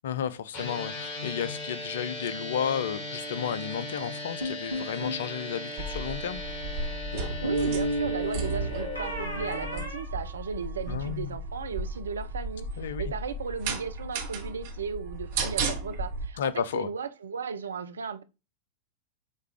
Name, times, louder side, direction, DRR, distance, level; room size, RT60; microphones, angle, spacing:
voice 1, 0.0-6.4 10.9-11.4 12.8-13.1 16.4-16.9, left 8 dB, 60° left, 0.4 m, -32 dB
sound 1, 0.5-9.9, left 1 dB, 40° left, 2.4 m, -38 dB
sound 2, 4.4-5.2 7.1-10.9, right 1 dB, 80° left, 1.6 m, -32 dB
sound 3, 5.8-16.3, right 2 dB, 50° right, 0.9 m, -35 dB
voice 2, 7.4-18.2, right 6 dB, 70° right, 0.5 m, -36 dB
6.5 x 2.4 x 3.4 m
figure-of-eight pair, 90°, 0 cm